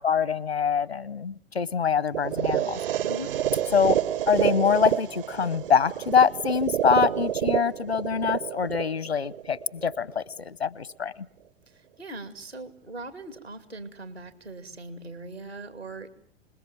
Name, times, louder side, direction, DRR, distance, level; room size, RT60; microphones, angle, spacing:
voice 1, 0.0-2.8 3.7-4.0 4.3-11.1, left 6 dB, 80° left, 0.9 m, -24 dB
sound 1, 2.1-10.1, right 10 dB, 60° right, 1.0 m, -28 dB
voice 2, 11.7-16.1, right 1 dB, 85° right, 2.8 m, -40 dB
27.0 x 21.0 x 7.6 m
figure-of-eight pair, 95°, 31 cm